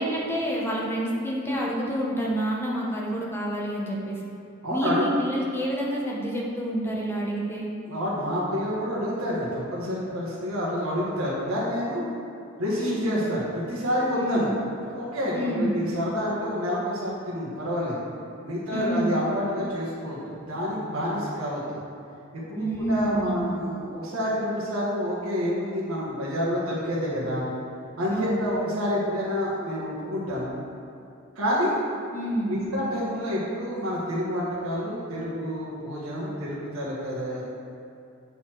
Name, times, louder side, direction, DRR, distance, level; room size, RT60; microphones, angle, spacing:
voice 1, 0.0-4.2 4.7-7.7 12.8-13.1 14.2-14.5 15.3-15.9 18.7-19.1 22.6-23.6 28.1-28.5 32.1-32.8, equal, 10° left, -4 dB, 1.0 m, -28 dB
voice 2, 4.6-5.1 7.9-12.0 12.6-14.5 14.8-18.0 18.4-21.8 22.3-27.4 28.0-30.5 31.3-31.7 32.5-37.5, equal, 75° right, -7 dB, 1.6 m, -28 dB
8.2 x 4.2 x 4.5 m, 2.6 s
head